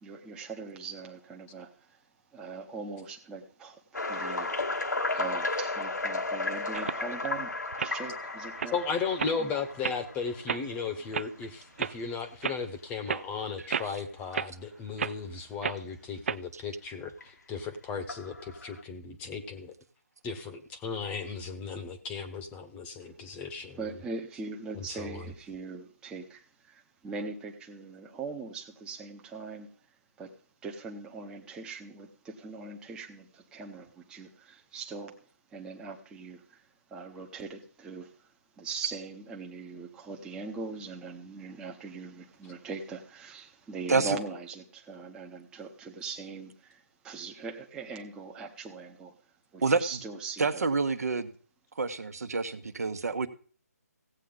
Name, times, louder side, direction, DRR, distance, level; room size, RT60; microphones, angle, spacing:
voice 1, 0.0-2.0 2.3-3.8 4.1-8.8 9.4-9.5 23.0-23.1 23.7-29.7 30.2-35.2 35.5-49.2 49.5-50.6, right 4 dB, 10° right, 1 dB, 0.8 m, -41 dB
sound 1, 3.9-10.8 11.5-11.6 12.2-12.3 12.9-13.0 14.3-14.4 17.2-17.3 18.1-18.8, left 3 dB, 85° left, 1.3 m, -34 dB
sound 2, 6.7-7.3 7.7-7.9 8.4-8.7 9.2-9.4 9.8-10.0 10.5-10.6 11.1-11.3 11.8-11.9 12.4-12.6 13.1-13.2 13.7-14.0 14.3-14.5 15.0-15.1 15.6-15.8 16.3-16.4, right 7 dB, 45° right, 0.4 m, -32 dB
voice 2, 8.7-19.7 20.2-23.8 24.8-25.3, left 5 dB, 15° left, 8 dB, 1.0 m, -36 dB
voice 3, 50.4-51.3 51.8-53.3, right 4 dB, 65° right, 10 dB, 1.2 m, -28 dB
16.0 x 8.3 x 3.9 m, 0.42 s
figure-of-eight pair, 150°, 9 cm